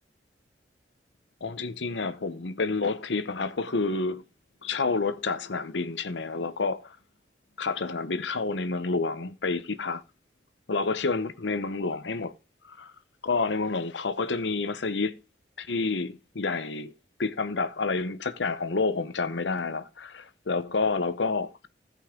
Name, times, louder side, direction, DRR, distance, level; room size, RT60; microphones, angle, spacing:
voice 1, 1.4-4.2 4.6-7.0 7.6-10.0 10.7-12.3 12.7-12.9 13.2-15.1 15.6-16.9 17.2-21.7, left 3 dB, 90° left, 0.9 m, -29 dB
15.5 x 5.5 x 3.7 m
head